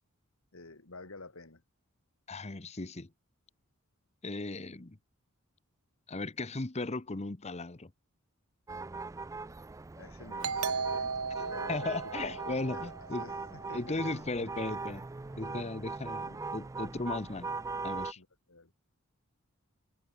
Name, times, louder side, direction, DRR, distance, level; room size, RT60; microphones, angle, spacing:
voice 1, 0.5-1.6 10.0-12.0 12.4-14.2 15.5-15.8 18.2-18.7, left 3 dB, 65° left, 2.1 m, -50 dB
voice 2, 2.3-3.1 4.2-5.0 6.1-7.9 11.7-13.2 13.7-15.1 15.3-17.6 17.8-18.2, left 2 dB, 30° left, 1.0 m, -36 dB
sound 1, 8.7-18.1, right 3 dB, 15° right, 0.3 m, -40 dB
Doorbell, 10.4-13.8, right 5 dB, 85° right, 1.7 m, -36 dB
head